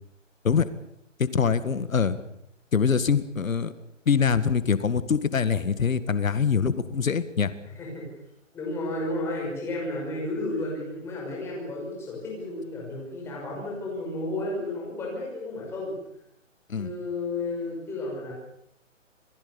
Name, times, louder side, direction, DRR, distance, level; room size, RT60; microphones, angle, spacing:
voice 1, 1.2-2.2 2.7-3.7 4.1-7.5 16.7-16.9, left 6 dB, 90° left, 13 dB, 1.9 m, -24 dB
voice 2, 8.5-15.9 16.7-18.3, left 2 dB, 5° left, -3 dB, 5.8 m, -32 dB
28.0 x 20.0 x 7.0 m, 0.75 s
hypercardioid pair, 175°, 39 cm